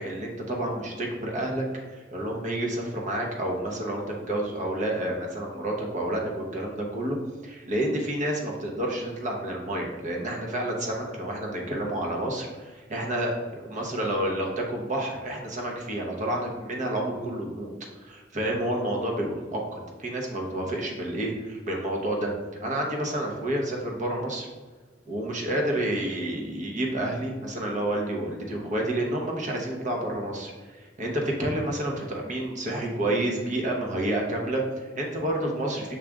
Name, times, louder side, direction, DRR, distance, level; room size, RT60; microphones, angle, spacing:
voice 1, 0.0-7.2 7.4-13.3 13.7-17.7 18.0-22.3 22.6-24.5 25.1-35.9, right 1 dB, 40° right, 0 dB, 0.8 m, -29 dB
6.0 x 2.4 x 3.5 m, 1.3 s
head